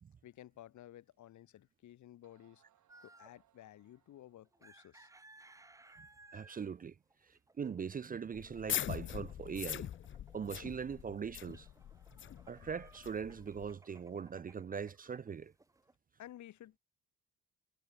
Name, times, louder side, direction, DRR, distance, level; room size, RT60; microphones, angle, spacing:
voice 1, 0.2-2.6 3.0-5.1 16.2-16.8, left 13 dB, 60° left, 1.5 m, -54 dB
sound 1, 1.1-1.2 1.9-2.0 2.2-4.7, right 12 dB, 70° right, 6.4 m, -73 dB
sound 2, 2.9-3.4 4.5-16.0, right 2 dB, 10° right, 1.0 m, -63 dB
voice 2, 6.3-7.0 7.2-9.9 10.3-11.7 12.5-15.5, right 6 dB, 25° right, 0.6 m, -41 dB
sound 3, 8.3-13.7, left 10 dB, 35° left, 0.5 m, -42 dB
cardioid pair, 115°, 33 cm